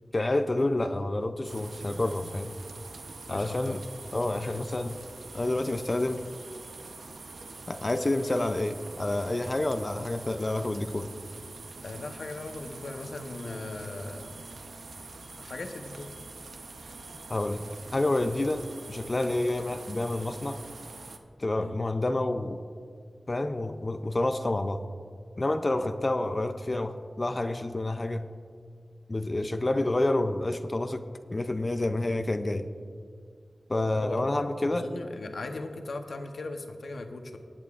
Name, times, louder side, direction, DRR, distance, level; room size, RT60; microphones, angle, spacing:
voice 1, 0.1-2.5 3.3-3.8 4.1-4.9 5.3-6.2 7.7-11.1 17.3-17.6 17.9-20.6 21.4-22.6 23.3-24.8 25.4-28.2 29.1-32.7 33.7-34.9, left 2 dB, 35° left, 9 dB, 0.5 m, -28 dB
sound 1, 1.4-21.2, right 3 dB, 85° right, 0.8 m, -45 dB
voice 2, 3.3-3.8 4.6-4.7 11.8-14.3 15.3-16.1 21.6-21.8 25.8-25.9 34.0-34.3 34.7-37.4, left 2 dB, 75° left, 5 dB, 0.9 m, -38 dB
20.5 x 8.9 x 2.5 m, 2.2 s
wide cardioid pair, 85°, 0 cm